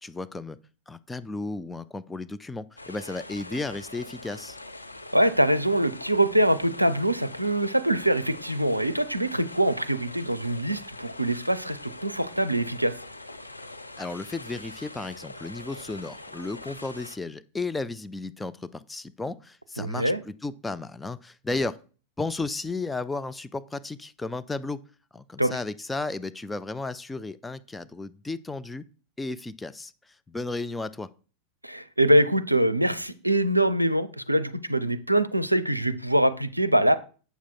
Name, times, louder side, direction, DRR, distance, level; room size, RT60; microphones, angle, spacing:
voice 1, 0.0-0.6 0.9-4.6 14.0-21.8 22.2-24.8 25.1-28.8 29.2-31.1, left 3 dB, 10° left, 11 dB, 0.4 m, -34 dB
sound 1, 2.8-17.2, left 2 dB, 85° left, 0.5 m, -43 dB
voice 2, 5.1-13.0 19.8-20.2 25.4-25.5 31.6-37.0, right 1 dB, 90° right, 13 dB, 0.5 m, -24 dB
8.2 x 6.3 x 3.9 m, 0.38 s
figure-of-eight pair, 90°, 0 cm